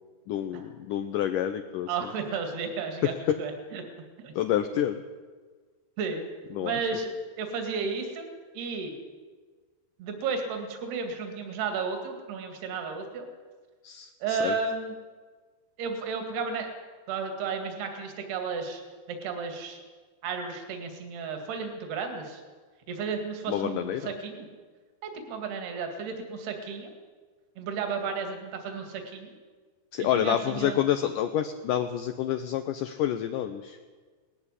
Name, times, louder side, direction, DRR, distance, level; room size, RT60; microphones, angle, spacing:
voice 1, 0.3-2.1 3.3-3.4 4.4-5.0 6.5-6.8 13.8-14.6 23.5-24.1 29.9-33.8, left 10 dB, 75° left, 7 dB, 1.9 m, -28 dB
voice 2, 1.9-3.8 4.2-4.3 6.0-6.2 6.6-8.3 8.5-8.9 10.0-13.3 14.2-14.9 15.8-16.7 17.1-18.8 19.1-19.8 20.2-22.4 22.9-24.5 25.0-26.9 27.6-29.3 30.0-30.8, right 5 dB, 70° right, 5 dB, 4.0 m, -33 dB
19.0 x 15.0 x 9.9 m, 1.4 s
omnidirectional pair, 4.8 m